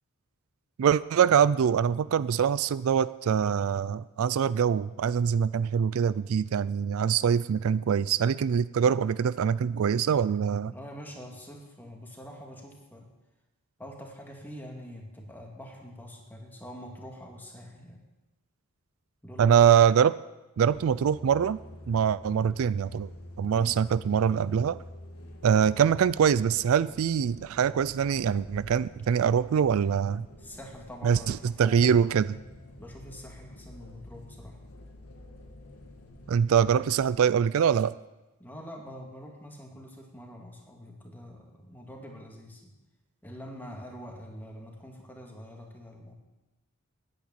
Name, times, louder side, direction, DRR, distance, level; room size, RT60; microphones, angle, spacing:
voice 1, 0.8-10.7 19.4-20.1 20.6-21.6 21.9-23.1 23.4-24.8 25.4-30.3 31.0-32.4 36.3-37.9, right 7 dB, 70° right, 17 dB, 0.4 m, -24 dB
voice 2, 10.7-13.1 13.8-18.0 19.2-19.7 23.5-23.8 30.4-32.0 32.8-34.6 38.4-42.7 43.2-46.1, equal, 10° left, 0 dB, 2.3 m, -45 dB
Trackless Trolley, 20.6-37.3, left 1 dB, 90° left, 1.8 m, -48 dB
10.5 x 8.7 x 9.1 m, 1.0 s
head